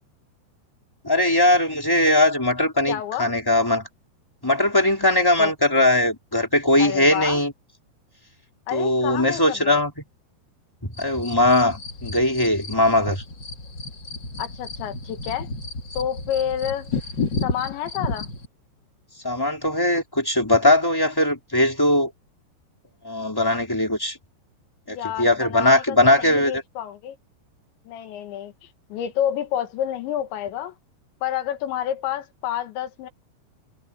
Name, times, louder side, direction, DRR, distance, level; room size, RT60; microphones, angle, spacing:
voice 1, 1.0-3.8 4.4-7.5 8.7-9.9 10.8-13.2 19.2-22.1 23.0-24.2 24.9-26.5, left 1 dB, 5° left, 3.7 m, -20 dB
voice 2, 2.9-3.3 5.4-5.5 6.8-7.4 8.7-9.8 14.4-15.5 15.9-16.9 17.4-18.3 24.9-27.2 27.9-28.5 28.9-30.7 31.2-33.1, left 10 dB, 90° left, 4.1 m, -29 dB
sound 1, 10.9-18.5, left 3 dB, 30° left, 2.7 m, -32 dB
omnidirectional pair, 5.0 m